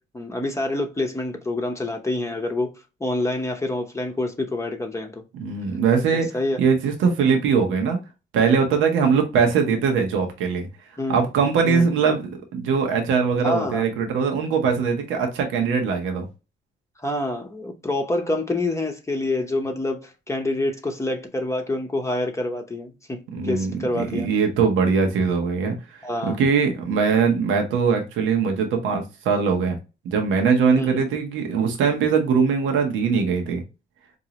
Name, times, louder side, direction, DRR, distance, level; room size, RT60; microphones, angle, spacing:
voice 1, 0.1-2.7 3.0-5.2 6.1-6.6 9.0-9.1 11.0-11.2 11.6-11.9 13.4-13.8 17.0-23.2 23.4-24.3 26.0-26.4 30.8-30.9, left 2 dB, 15° left, 0.7 m, -27 dB
voice 2, 5.3-6.3 6.6-8.0 8.3-10.7 11.1-12.2 12.5-16.3 23.3-25.8 26.2-29.8 30.0-33.6, right 5 dB, 90° right, 0.9 m, -21 dB
3.9 x 2.6 x 2.9 m
cardioid pair, 90°, 20 cm